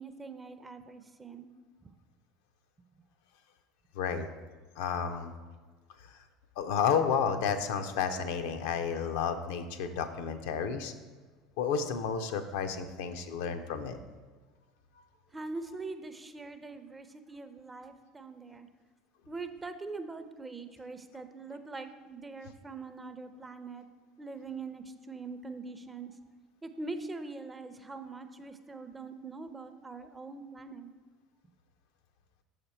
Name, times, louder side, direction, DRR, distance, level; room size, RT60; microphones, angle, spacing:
voice 1, 0.0-1.5 15.3-18.7 19.3-23.9 24.2-26.1 26.6-30.9, right 3 dB, 20° right, 9 dB, 0.5 m, -43 dB
voice 2, 4.0-4.3 4.8-5.3 6.0-6.2 6.6-10.9 11.6-14.0, left 7 dB, 65° left, 8 dB, 0.4 m, -31 dB
6.6 x 5.0 x 4.3 m, 1.4 s
figure-of-eight pair, 65°, 0 cm